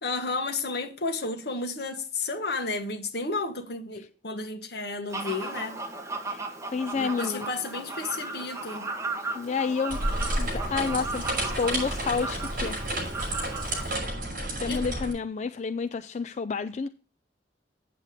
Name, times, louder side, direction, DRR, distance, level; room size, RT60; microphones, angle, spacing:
voice 1, 0.0-5.8 6.9-8.8 14.7-14.8, left 3 dB, 65° left, 1.5 m, -32 dB
Fowl, 5.1-14.0, right 3 dB, 15° right, 1.5 m, -36 dB
voice 2, 6.7-7.5 9.3-10.0 10.4-12.8 14.6-16.9, left 5 dB, 40° left, 0.4 m, -30 dB
sound 1, 9.9-15.1, right 1 dB, 50° right, 5.7 m, -31 dB
8.5 x 8.1 x 3.8 m
head